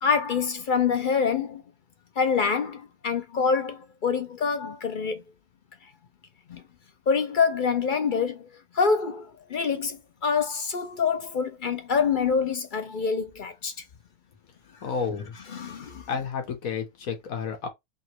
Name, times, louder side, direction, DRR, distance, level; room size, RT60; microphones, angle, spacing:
voice 1, 0.0-1.6 2.2-5.2 6.5-6.6 7.1-8.5 8.7-13.7 15.5-16.1, left 5 dB, 50° left, 0.6 m, -26 dB
voice 2, 14.8-15.4 16.1-17.7, left 6 dB, 80° left, 1.6 m, -31 dB
3.7 x 3.0 x 4.4 m
omnidirectional pair, 1.4 m